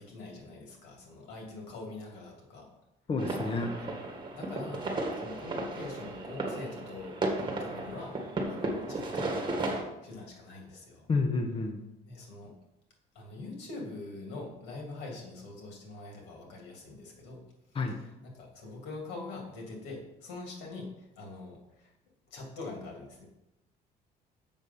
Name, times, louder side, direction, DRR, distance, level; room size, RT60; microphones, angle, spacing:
voice 1, 0.0-2.7 3.9-4.9 5.2-8.2 8.5-9.7 10.0-11.1 12.0-12.5 13.1-17.4 17.7-21.9 22.3-23.2, left 3 dB, 90° left, 0 dB, 2.6 m, -44 dB
voice 2, 3.1-3.7 11.1-11.8 17.7-18.0, left 3 dB, 35° left, 5 dB, 1.0 m, -29 dB
sound 1, 3.2-9.8, right 2 dB, 25° right, 1.7 m, -34 dB
7.2 x 6.2 x 5.5 m, 0.92 s
cardioid pair, 110°, 17 cm